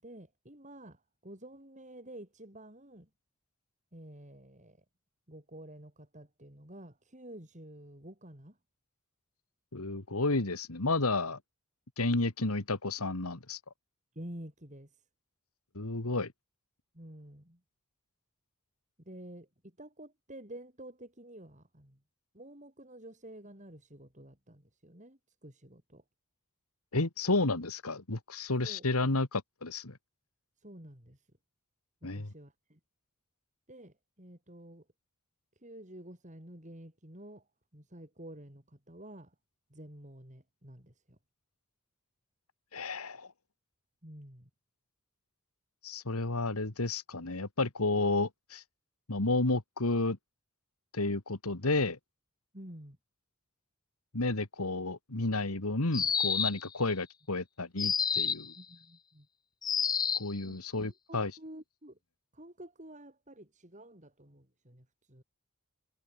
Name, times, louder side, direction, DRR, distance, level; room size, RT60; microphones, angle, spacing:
voice 1, 0.0-3.1 3.9-4.8 5.3-8.6 14.1-15.0 16.9-17.6 19.0-22.0 22.3-26.0 28.6-28.9 30.6-31.3 32.0-32.8 33.7-34.9 35.6-37.5 37.7-39.3 39.7-41.2 44.0-44.5 52.5-53.0 58.5-59.3 60.4-62.0 62.3-65.2, right 1 dB, 35° right, 6.1 m, -50 dB
voice 2, 9.7-11.4 12.0-13.6 15.8-16.3 26.9-30.0 32.0-32.3 42.7-43.3 45.8-48.6 49.1-50.2 50.9-52.0 54.1-58.5 60.1-61.3, left 2 dB, 85° left, 2.1 m, -31 dB
sound 1, 55.9-56.7 57.8-58.5 59.6-60.4, left 7 dB, 20° left, 0.3 m, -29 dB
head